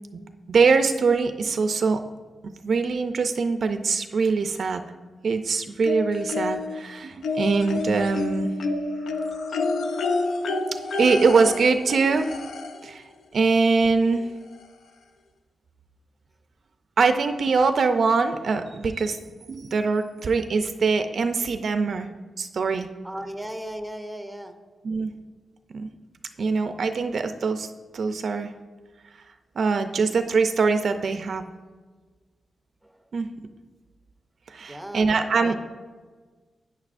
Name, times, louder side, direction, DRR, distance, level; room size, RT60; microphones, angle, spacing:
voice 1, 0.5-2.0 2.6-4.8 5.2-8.5 11.0-12.3 12.8-13.0 13.3-14.3 17.0-19.2 19.5-22.1 22.4-22.9 24.8-25.1 25.7-25.9 26.4-28.5 29.6-31.4 33.1-33.3 34.5-35.5, right 4 dB, 60° right, 8 dB, 0.4 m, -23 dB
sound 1, 5.8-6.8 7.2-12.9 14.1-14.2 14.6-14.7, left 3 dB, 90° left, 0.5 m, -29 dB
voice 2, 23.0-24.5 32.8-33.0 34.6-35.5, equal, 5° right, 7 dB, 0.6 m, -37 dB
9.5 x 9.0 x 2.5 m, 1.4 s
wide cardioid pair, 110°, 0 cm